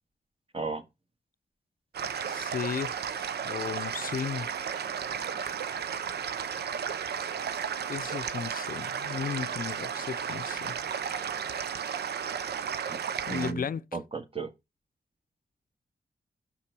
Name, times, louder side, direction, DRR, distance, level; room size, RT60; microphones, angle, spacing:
voice 1, 0.5-0.8 12.9-13.0 13.3-14.5, right 4 dB, 35° right, 1.6 m, -35 dB
sound 1, 1.9-13.5, right 7 dB, 85° right, 0.6 m, -34 dB
voice 2, 2.2-4.5 7.9-10.7 13.3-13.8, left 7 dB, 60° left, 0.5 m, -35 dB
5.8 x 5.4 x 6.0 m
cardioid pair, 60°, 17 cm